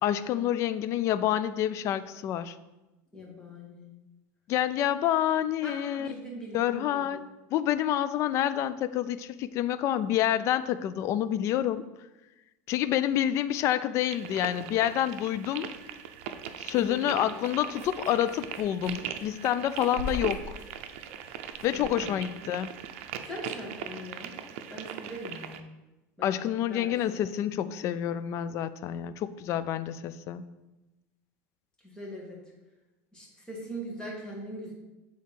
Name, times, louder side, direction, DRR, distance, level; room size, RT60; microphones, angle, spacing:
voice 1, 0.0-2.5 4.5-6.1 6.5-7.2 7.5-11.8 12.7-15.7 16.6-20.5 21.6-22.8 26.2-30.4, left 11 dB, 45° left, 14 dB, 0.3 m, -28 dB
voice 2, 3.1-3.9 5.6-7.2 16.7-17.3 21.7-22.3 23.2-24.4 24.7-25.6 26.2-26.4 26.7-27.3 31.8-32.4 33.1-34.7, equal, 10° left, -4 dB, 2.1 m, -41 dB
sound 1, 14.1-25.6, right 9 dB, 80° right, 0.5 m, -40 dB
sound 2, 15.6-23.4, left 1 dB, 35° right, 1.3 m, -44 dB
7.6 x 3.5 x 4.4 m, 1.1 s
supercardioid pair, 140°, 7 cm